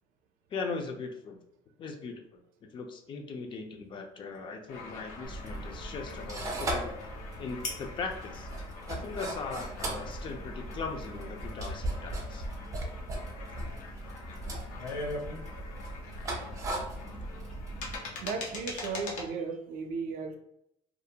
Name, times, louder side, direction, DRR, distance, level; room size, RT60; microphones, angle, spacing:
voice 1, 0.5-1.4 1.8-7.0 7.4-8.5 8.9-12.4, left 4 dB, 35° left, 3 dB, 0.4 m, -39 dB
sound 1, 3.3-11.0, left 3 dB, 60° left, 0.8 m, -50 dB
sound 2, 4.7-19.3, left 3 dB, 90° left, 0.6 m, -43 dB
sound 3, 5.2-18.0, right 1 dB, 25° right, 0.4 m, -38 dB
voice 2, 18.2-20.4, right 5 dB, 80° right, 5 dB, 0.5 m, -35 dB
2.4 x 2.1 x 2.7 m, 0.78 s
cardioid pair, 155°, 14 cm